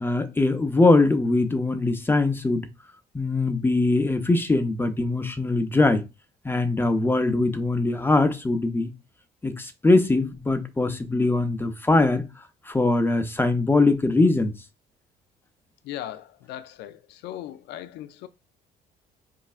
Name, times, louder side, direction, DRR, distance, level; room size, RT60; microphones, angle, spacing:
voice 1, 0.0-2.7 3.1-6.0 6.4-8.9 9.4-12.3 12.7-14.5, left 2 dB, 15° left, 0.5 m, -22 dB
voice 2, 15.8-18.3, left 12 dB, 80° left, 0.4 m, -38 dB
4.5 x 3.2 x 2.4 m
cardioid pair, 110°, 17 cm